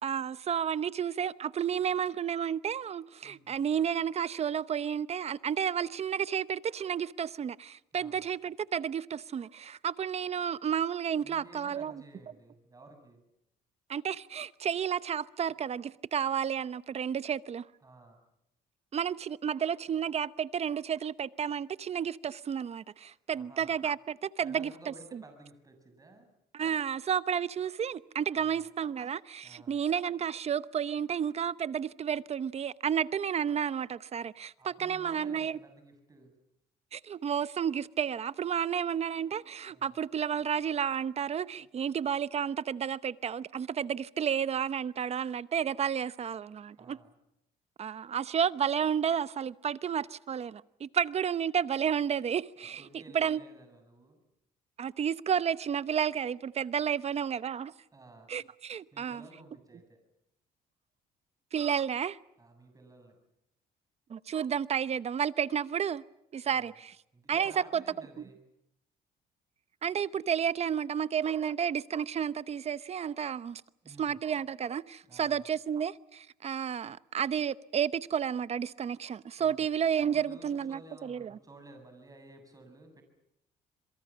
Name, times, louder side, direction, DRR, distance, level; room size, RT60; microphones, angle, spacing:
voice 1, 0.0-12.0 13.9-17.6 18.9-24.7 26.5-35.6 36.9-47.0 47.8-52.9 53.1-53.4 54.8-57.7 58.3-59.2 61.5-62.2 64.1-66.0 66.3-67.0 67.3-67.8 69.8-73.6 74.0-81.4, right 8 dB, 40° right, 0.8 m, -31 dB
voice 2, 3.2-3.6 7.9-8.3 11.2-13.2 17.8-18.2 23.0-23.7 24.4-26.3 28.3-28.6 29.4-29.8 34.6-36.4 39.7-40.0 46.8-47.1 52.8-54.2 57.0-57.2 57.9-58.3 58.9-60.0 62.4-63.2 66.4-66.8 67.1-68.4 73.8-74.2 75.0-75.4 79.4-79.7 80.0-83.0, right 2 dB, 20° right, 7.4 m, -54 dB
27.0 x 23.0 x 7.3 m
cardioid pair, 110°, 17 cm